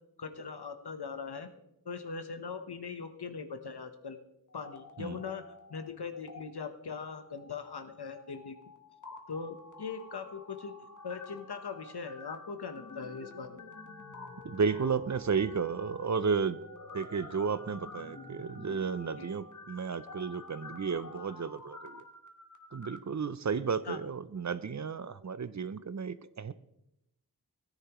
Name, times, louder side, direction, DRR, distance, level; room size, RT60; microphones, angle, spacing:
voice 1, 0.2-1.5 1.9-4.2 4.5-5.4 5.7-8.6 9.3-10.7 11.0-13.6 19.2-19.3 23.9-24.0, left 5 dB, 75° left, 8 dB, 1.1 m, -40 dB
sound 1, 4.5-5.9 6.1-6.4 7.0-23.0, left 3 dB, 50° left, 1.2 m, -49 dB
voice 2, 14.4-16.6 16.9-22.0 22.7-26.5, right 5 dB, 45° right, 14 dB, 0.5 m, -33 dB
17.0 x 9.8 x 3.0 m, 0.85 s
wide cardioid pair, 55°, 39 cm